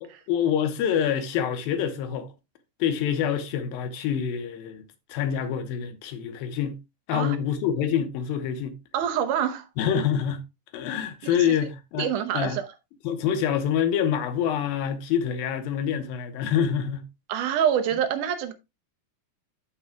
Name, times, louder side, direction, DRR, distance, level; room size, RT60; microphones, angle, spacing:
voice 1, 0.0-2.3 2.8-4.8 5.1-6.8 7.1-8.8 9.8-10.4 10.7-12.6 13.0-17.1, left 8 dB, 75° left, 2.7 m, -26 dB
voice 2, 8.9-9.6 12.0-12.7 17.3-18.5, right 9 dB, 70° right, 2.1 m, -26 dB
14.5 x 5.4 x 2.3 m
omnidirectional pair, 4.4 m